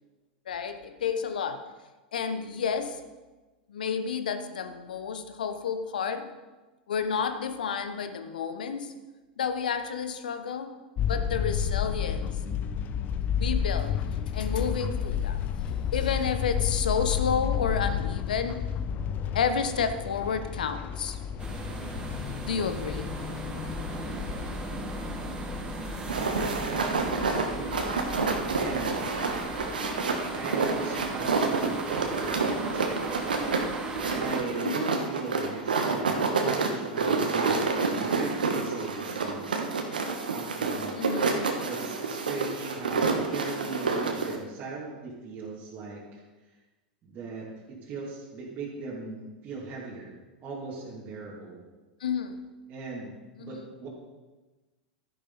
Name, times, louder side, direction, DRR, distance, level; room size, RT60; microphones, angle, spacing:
voice 1, 0.5-1.6 2.1-3.0 3.7-6.3 6.9-8.9 9.4-10.7 11.1-12.4 13.4-14.0 14.3-15.5 15.9-18.6 19.3-21.2 22.5-23.1 34.6-34.9 40.9-41.3 52.0-52.4 53.4-53.6, left 6 dB, 70° left, 10 dB, 1.0 m, -30 dB
sound 1, 11.0-29.8, left 8 dB, 35° left, 0.7 m, -32 dB
sound 2, 21.4-34.4, right 3 dB, 20° right, 1.9 m, -37 dB
sound 3, 26.1-44.4, right 4 dB, 75° right, 1.4 m, -28 dB
voice 2, 26.6-27.8 28.5-28.9 30.3-33.2 34.1-39.6 40.3-41.1 41.6-46.2 47.0-50.1 50.4-51.6 52.7-53.9, right 4 dB, 35° right, -6 dB, 2.7 m, -39 dB
13.0 x 10.5 x 4.1 m, 1.2 s
figure-of-eight pair, 90°, 5 cm